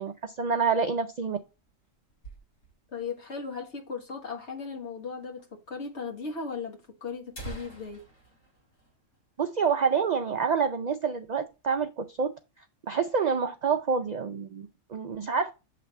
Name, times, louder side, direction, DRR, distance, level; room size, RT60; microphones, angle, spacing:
voice 1, 0.0-1.4 9.4-12.3 12.9-15.5, right 5 dB, 65° right, 0.4 m, -27 dB
sound 1, 1.2-3.0 3.3-3.4 3.6-3.7 4.4-4.5 5.4-5.5 5.8-5.9 6.7-6.8 7.1-9.7 10.0-10.2 10.6-10.8 11.3-11.8, right 2 dB, 85° left, 2.8 m, -47 dB
voice 2, 2.9-8.0, left 5 dB, 60° left, 1.8 m, -37 dB
7.5 x 3.4 x 4.3 m
omnidirectional pair, 1.3 m